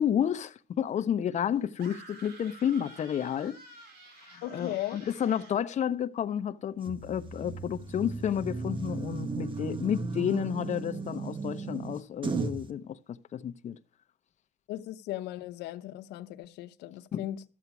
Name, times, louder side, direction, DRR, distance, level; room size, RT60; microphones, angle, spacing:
voice 1, 0.0-3.6 4.2-13.8 17.1-17.2, left 9 dB, 45° left, 0.8 m, -31 dB
sound 1, 1.8-5.7, right 3 dB, 70° right, 3.2 m, -51 dB
voice 2, 4.4-5.1 14.7-17.4, left 14 dB, 85° left, 0.8 m, -37 dB
sound 2, 6.9-12.7, right 4 dB, 30° right, 1.3 m, -35 dB
14.0 x 8.1 x 6.0 m
cardioid pair, 110°, 17 cm